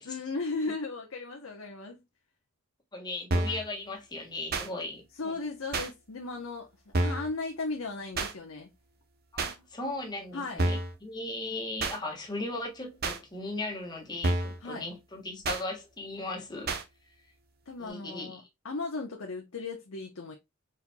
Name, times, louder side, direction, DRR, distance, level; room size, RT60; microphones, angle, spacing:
voice 1, 0.0-2.0 5.2-8.7 10.3-10.6 14.6-14.9 17.7-20.3, left 3 dB, 65° left, 0.9 m, -36 dB
voice 2, 2.9-5.3 9.3-16.7 17.8-18.5, left 2 dB, 20° left, 1.4 m, -37 dB
sound 1, 3.3-3.6 4.5-4.7 5.7-5.9 6.9-7.3 8.2-8.3 9.4-9.5 10.6-10.9 11.8-12.0 13.0-13.2 14.2-14.6 15.4-15.6 16.7-16.8, right 2 dB, 45° right, 0.8 m, -29 dB
4.4 x 4.3 x 2.2 m
head